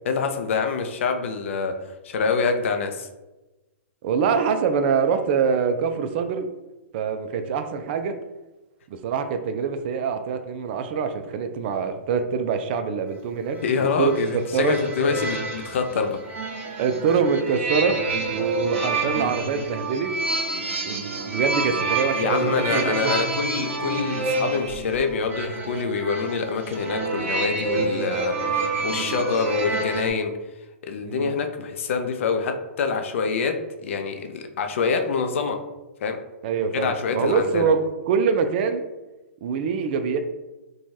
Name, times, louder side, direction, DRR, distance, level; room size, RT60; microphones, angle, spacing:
voice 1, 0.1-1.7 2.0-3.1 13.6-16.2 22.1-30.3 30.8-35.6 36.0-36.2 36.7-37.7, left 5 dB, 65° left, 5 dB, 0.4 m, -26 dB
voice 2, 4.0-6.5 6.9-8.2 8.9-13.6 14.0-14.1 14.5-14.7 16.8-18.0 18.3-20.1 20.8-23.2 31.0-31.3 36.4-37.8 38.1-38.8 39.4-40.2, right 6 dB, 50° right, 7 dB, 0.3 m, -24 dB
sound 1, 13.5-30.1, right 2 dB, 65° right, 0.9 m, -28 dB
3.0 x 2.2 x 2.6 m, 1.1 s
hypercardioid pair, 120°, 7 cm